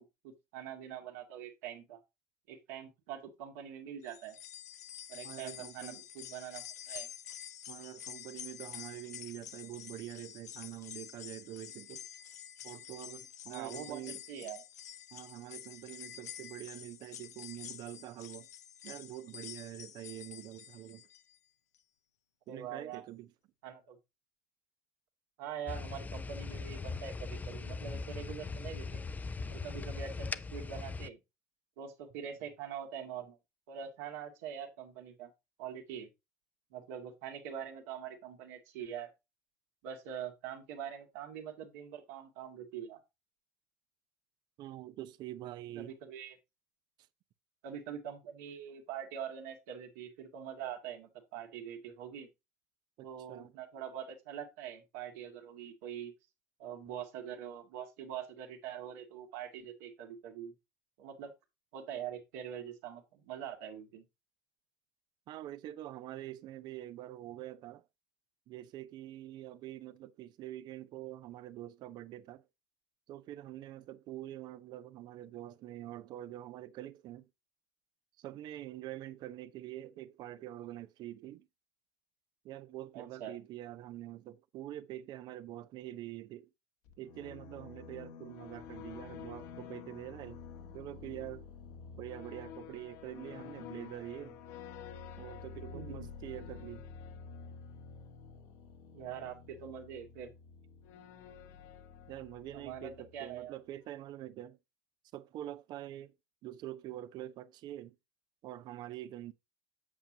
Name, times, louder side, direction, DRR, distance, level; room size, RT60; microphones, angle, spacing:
voice 1, 0.0-2.0 2.5-4.4 5.1-7.1 13.5-14.6 22.5-23.0 23.6-24.0 25.4-29.1 29.5-31.2 31.8-33.4 33.7-35.3 35.6-36.1 36.7-39.1 39.8-43.0 45.8-46.4 47.6-52.3 53.0-56.1 56.6-60.5 61.0-61.3 61.7-64.0 82.9-83.3 95.7-96.1 98.9-100.3 102.5-103.6, right 8 dB, 70° right, 2.1 m, -44 dB
sound 1, 4.0-21.4 21.8-21.9 22.9-23.0, left 10 dB, 90° left, 0.7 m, -48 dB
voice 2, 5.2-6.0 7.7-12.1 12.6-14.2 15.1-18.5 18.8-21.1 22.5-23.3 44.6-45.9 53.0-53.5 65.3-67.8 68.5-72.4 73.1-77.3 78.2-81.5 82.4-86.5 87.0-90.4 90.7-91.5 91.9-94.4 95.2-96.9 102.1-104.6 105.1-106.1 106.4-108.0 108.4-109.3, right 14 dB, 55° right, 0.7 m, -45 dB
sound 2, 25.7-31.1, left 4 dB, 20° left, 0.6 m, -40 dB
sound 3, 86.8-103.5, left 6 dB, 70° left, 1.5 m, -49 dB
8.4 x 7.3 x 2.8 m
hypercardioid pair, 80°, 9 cm